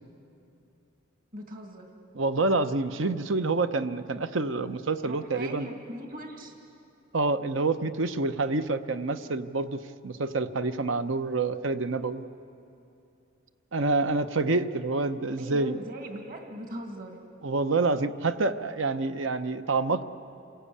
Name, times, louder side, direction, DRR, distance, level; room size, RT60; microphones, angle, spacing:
voice 1, 1.3-1.9 5.0-6.5 15.4-17.2, right 1 dB, 45° right, 2 dB, 2.2 m, -40 dB
voice 2, 2.1-5.7 7.1-12.2 13.7-15.8 17.4-20.0, right 3 dB, 75° right, 10 dB, 0.9 m, -27 dB
28.5 x 18.0 x 8.5 m, 2.8 s
head